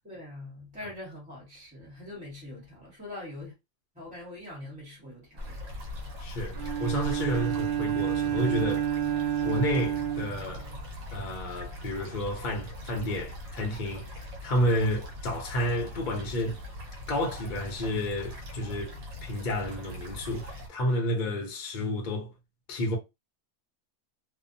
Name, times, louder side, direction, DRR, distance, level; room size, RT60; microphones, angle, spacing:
voice 1, 0.0-3.5 3.9-5.5, left 2 dB, 5° right, 1.0 m, -43 dB
sound 1, 5.4-20.7, left 1 dB, 90° right, 1.3 m, -41 dB
voice 2, 6.2-8.9 9.4-10.7 11.1-16.6 17.1-22.3 22.7-23.0, equal, 45° left, 0.7 m, -31 dB
Bowed string instrument, 6.5-11.1, right 10 dB, 55° right, 0.7 m, -30 dB
2.7 x 2.2 x 2.6 m
omnidirectional pair, 1.4 m